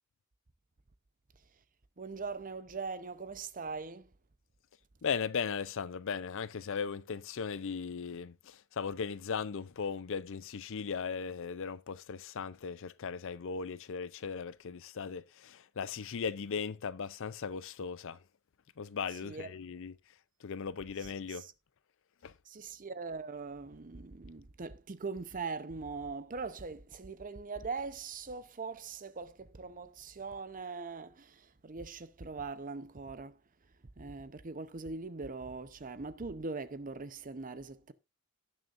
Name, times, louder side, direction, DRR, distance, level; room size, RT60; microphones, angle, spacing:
voice 1, 2.0-4.1 19.1-19.5 21.0-21.5 22.5-33.4 34.0-37.9, right 4 dB, 40° right, 0.8 m, -41 dB
voice 2, 5.0-18.2 18.8-19.9 20.4-21.4 22.2-22.3, left 6 dB, 60° left, 0.5 m, -37 dB
18.0 x 6.5 x 2.6 m
head